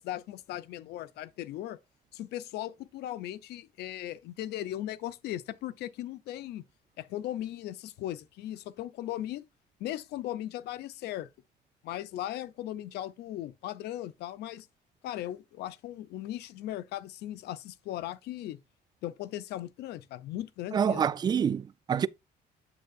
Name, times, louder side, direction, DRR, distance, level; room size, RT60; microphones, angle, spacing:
voice 1, 0.0-1.8 2.1-6.6 7.0-9.4 9.8-11.3 11.8-14.7 15.0-18.6 19.0-21.0, left 13 dB, 75° left, 0.6 m, -38 dB
voice 2, 20.7-22.1, right 7 dB, 25° right, 0.3 m, -27 dB
7.5 x 6.8 x 2.4 m
cardioid pair, 110°, 17 cm